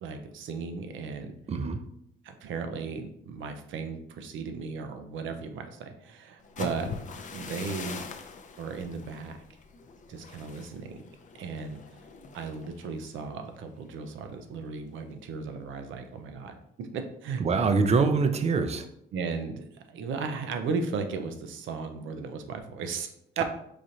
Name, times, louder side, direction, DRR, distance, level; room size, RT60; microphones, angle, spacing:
voice 1, 0.0-1.3 2.2-6.9 7.2-8.0 8.6-9.4 10.1-11.0 11.4-11.8 12.3-17.4 19.1-23.4, right 5 dB, 80° right, 6 dB, 0.6 m, -36 dB
voice 2, 1.5-1.8 17.4-18.9, right 4 dB, 35° right, 8 dB, 0.5 m, -24 dB
sound 1, 6.4-14.2 14.6-14.9 15.3-15.7, left 4 dB, 40° left, 0.5 m, -43 dB
4.8 x 2.5 x 2.8 m, 0.72 s
cardioid pair, 90°, 20 cm